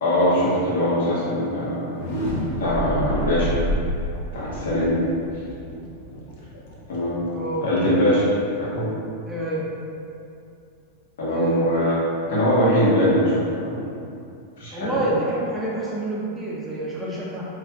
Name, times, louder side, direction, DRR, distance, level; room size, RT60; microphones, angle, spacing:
voice 1, 0.0-2.0 2.6-3.6 4.3-5.0 6.9-7.2 7.6-8.3 8.6-8.9 11.2-12.0 12.3-13.9 14.6-15.0, left 1 dB, 80° left, -8 dB, 1.0 m, -22 dB
sound 1, 1.8-7.7, right 1 dB, 60° left, 0.6 m, -29 dB
voice 2, 7.3-7.7 9.3-9.7 11.3-11.7 14.7-17.4, right 1 dB, 10° right, -6 dB, 0.4 m, -27 dB
3.0 x 2.5 x 2.3 m, 2.6 s
supercardioid pair, 140°, 0 cm